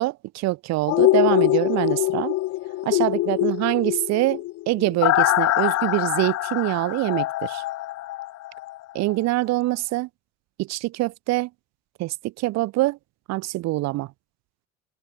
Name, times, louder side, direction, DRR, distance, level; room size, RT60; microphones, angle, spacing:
voice 1, 0.0-2.4 2.8-7.6 8.9-10.1 10.6-11.5 12.0-13.0 13.3-14.1, right 19 dB, 60° right, 1.4 m, -24 dB
sound 1, 0.9-8.8 9.1-9.2, left 17 dB, 60° left, 1.5 m, -23 dB
open air
cardioid pair, 125°, 29 cm